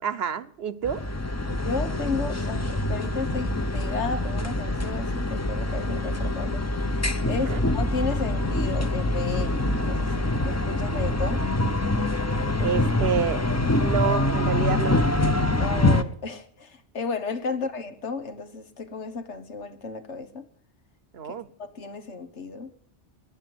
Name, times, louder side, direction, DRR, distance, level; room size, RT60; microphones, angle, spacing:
voice 1, 0.0-1.0 7.5-7.6 12.6-13.4 13.8-15.0 21.1-21.5, right 7 dB, 65° right, 1.0 m, -28 dB
sound 1, 0.8-16.0, left 2 dB, 15° left, 0.6 m, -25 dB
voice 2, 1.5-6.6 7.3-11.5 15.6-20.5 21.2-22.7, left 4 dB, 85° left, 1.7 m, -33 dB
21.0 x 7.0 x 7.8 m
omnidirectional pair, 1.1 m